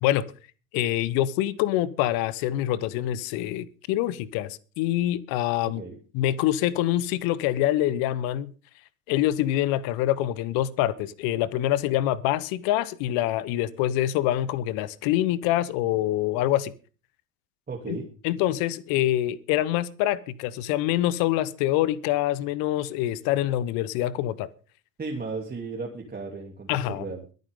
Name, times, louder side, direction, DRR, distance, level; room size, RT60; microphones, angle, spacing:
voice 1, 0.7-5.8 6.1-8.5 9.1-16.7 17.9-18.0 18.2-24.5 26.7-27.0, left 13 dB, 55° left, 1.1 m, -25 dB
voice 2, 5.6-6.0 17.7-18.1 25.0-27.2, right 4 dB, 20° right, 3.0 m, -35 dB
22.5 x 9.4 x 3.7 m
hypercardioid pair, 70°, 41 cm